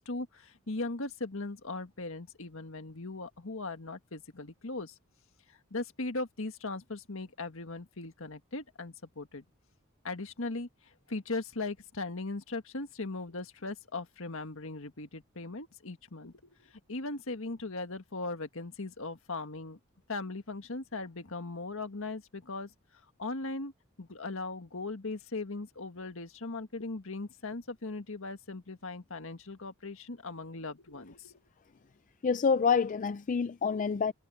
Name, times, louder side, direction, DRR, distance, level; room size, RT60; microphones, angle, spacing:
voice 1, 0.0-4.9 5.7-9.4 10.0-19.8 20.1-22.7 23.2-23.7 24.0-31.4, left 3 dB, 70° left, 1.8 m, -39 dB
voice 2, 32.2-34.1, left 5 dB, 35° left, 0.4 m, -27 dB
head